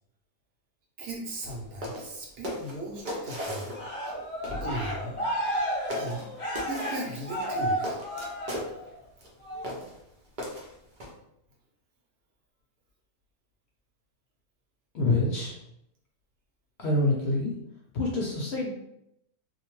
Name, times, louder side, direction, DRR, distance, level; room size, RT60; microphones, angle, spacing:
voice 1, 1.0-3.8 4.4-5.2 5.9-6.3 6.7-8.0, right 1 dB, 85° right, -1 dB, 1.3 m, -37 dB
sound 1, 1.4-1.6 1.8-2.1 2.4-4.1 4.4-4.6 5.4-5.6 5.9-6.2 6.5-7.0 7.4-8.7 9.2-9.3 9.6-9.9 10.4-11.1, equal, 50° right, 0.6 m, -37 dB
Cheering, 3.7-9.0 9.4-9.8, equal, 25° left, 1.0 m, -32 dB
voice 2, 14.9-15.6 16.8-17.5 17.9-18.7, left 2 dB, 60° left, -3 dB, 0.8 m, -26 dB
2.8 x 2.1 x 3.0 m, 0.79 s
omnidirectional pair, 1.5 m